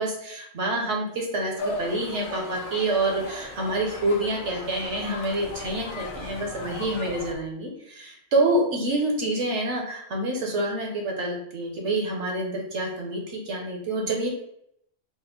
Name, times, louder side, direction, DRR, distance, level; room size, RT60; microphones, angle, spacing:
voice 1, 0.0-14.3, right 2 dB, 70° right, 0 dB, 1.1 m, -27 dB
sound 1, 1.6-7.3, left 2 dB, 70° left, 0.9 m, -37 dB
4.2 x 2.1 x 3.9 m, 0.73 s
omnidirectional pair, 1.3 m